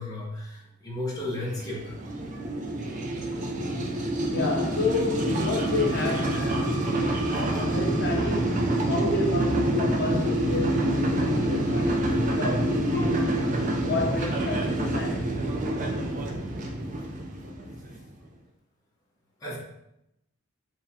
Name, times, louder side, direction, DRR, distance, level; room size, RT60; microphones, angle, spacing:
voice 1, 0.0-2.0 19.4-19.6, left 1 dB, 15° left, -6 dB, 0.8 m, -34 dB
sound 1, 1.4-18.1, right 1 dB, 35° right, 0.4 m, -27 dB
voice 2, 4.3-13.4 13.8-15.3, left 2 dB, 50° left, 0 dB, 0.7 m, -30 dB
4.5 x 2.1 x 2.7 m, 0.84 s
head